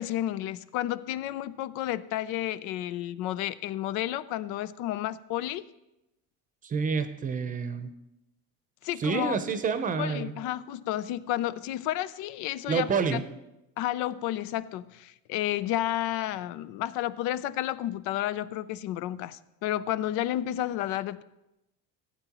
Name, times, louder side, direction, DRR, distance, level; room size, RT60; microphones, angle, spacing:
voice 1, 0.0-5.7 8.8-9.4 10.0-13.2 13.8-21.2, left 13 dB, 70° left, 17 dB, 0.5 m, -31 dB
voice 2, 6.6-7.9 9.0-10.3 12.7-13.2, right 5 dB, 25° right, 9 dB, 0.7 m, -28 dB
15.5 x 9.0 x 3.0 m, 0.92 s
cardioid pair, 130°, 31 cm